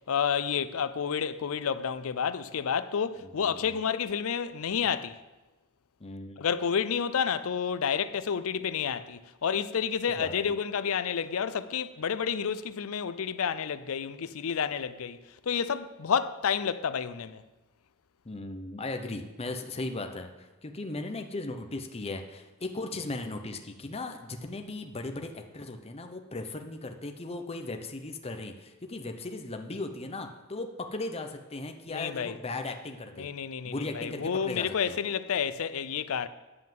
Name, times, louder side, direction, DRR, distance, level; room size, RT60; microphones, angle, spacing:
voice 1, 0.1-5.2 6.4-15.2 15.4-17.4 31.9-32.4 33.2-36.3, left 7 dB, 65° left, 0.5 m, -30 dB
voice 2, 3.2-3.8 6.0-6.4 10.1-10.5 18.2-33.3 33.6-35.1, left 2 dB, 30° left, 0.8 m, -37 dB
9.8 x 5.6 x 7.6 m
head